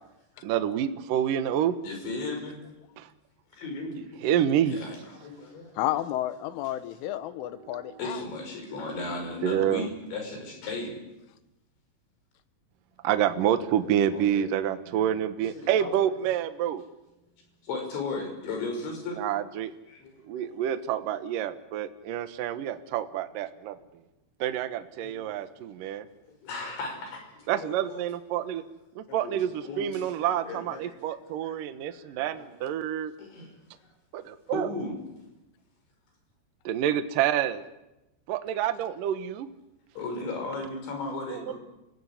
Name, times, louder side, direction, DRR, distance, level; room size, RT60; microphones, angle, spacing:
voice 1, 0.4-1.8 3.0-3.1 4.2-4.8 7.4-8.0 9.4-9.9 13.0-16.8 19.1-19.7 20.3-23.8 24.4-26.1 27.5-28.6 29.0-33.1 34.1-34.7 36.6-37.6 38.3-39.5 41.3-41.5, right 10 dB, 70° right, 10 dB, 2.1 m, -28 dB
voice 2, 1.8-2.6 3.5-4.0 4.7-5.9 8.0-11.0 13.4-14.5 15.5-15.9 17.6-19.2 19.9-20.1 20.4-20.6 25.0-25.3 26.4-28.0 29.1-30.9 31.4-31.6 31.9-32.5 33.2-33.6 34.5-35.0 40.0-41.5, left 3 dB, 65° left, 4 dB, 8.0 m, -36 dB
voice 3, 5.8-8.2, left 13 dB, 85° left, 13 dB, 3.6 m, -31 dB
29.0 x 17.5 x 9.9 m, 0.96 s
omnidirectional pair, 5.6 m